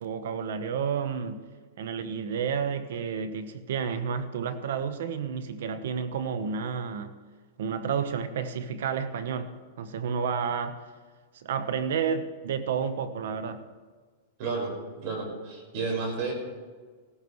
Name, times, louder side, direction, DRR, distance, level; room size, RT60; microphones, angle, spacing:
voice 1, 0.0-1.4 1.8-7.1 7.6-10.8 11.3-13.6, right 6 dB, 75° right, 11 dB, 1.0 m, -31 dB
voice 2, 14.4-14.7 15.0-16.3, right 4 dB, 55° right, 0 dB, 4.9 m, -31 dB
17.0 x 14.0 x 3.2 m, 1.5 s
hypercardioid pair, 135°, 0 cm